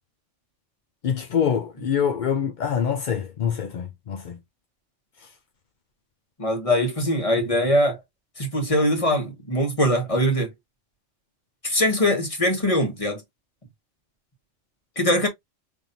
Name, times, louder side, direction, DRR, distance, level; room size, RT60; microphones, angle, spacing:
voice 1, 1.0-4.4 5.2-5.3, left 7 dB, 50° left, 0.6 m, -25 dB
voice 2, 6.4-8.0 8.4-10.5 11.6-13.2 15.0-15.3, equal, 30° left, 1.6 m, -22 dB
5.5 x 3.5 x 2.7 m
omnidirectional pair, 1.2 m